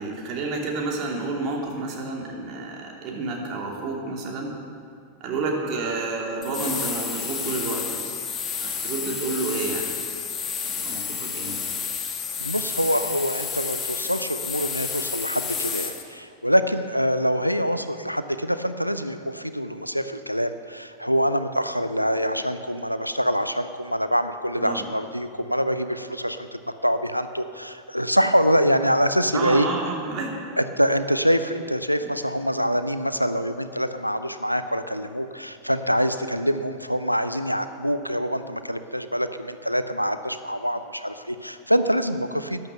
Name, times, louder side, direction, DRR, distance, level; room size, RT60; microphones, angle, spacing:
voice 1, 0.0-4.5 5.2-8.1 8.6-10.0 10.6-11.7 24.6-24.9 29.3-30.4, right 3 dB, 40° right, 0 dB, 2.8 m, -30 dB
sound 1, 6.4-16.0, left 6 dB, 25° left, 1.5 m, -30 dB
voice 2, 12.4-29.7 30.6-42.7, equal, 90° left, 11 dB, 0.6 m, -25 dB
13.5 x 10.5 x 6.8 m, 2.3 s
figure-of-eight pair, 90°, 0 cm